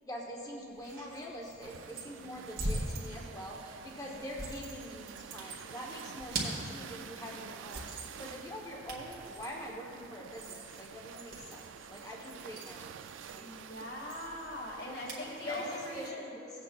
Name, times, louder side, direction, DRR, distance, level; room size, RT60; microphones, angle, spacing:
voice 1, 0.0-13.6 14.8-15.6 15.9-16.5, left 1 dB, 20° left, -2 dB, 1.0 m, -44 dB
sound 1, 0.7-15.3, right 2 dB, 50° right, 1.7 m, -43 dB
sound 2, 1.6-16.1, right 8 dB, 80° right, 0.3 m, -49 dB
voice 2, 2.0-2.5 3.7-4.1 6.2-7.4 13.4-16.3, left 1 dB, 60° left, -3 dB, 2.2 m, -44 dB
18.5 x 8.2 x 2.4 m, 2.6 s
head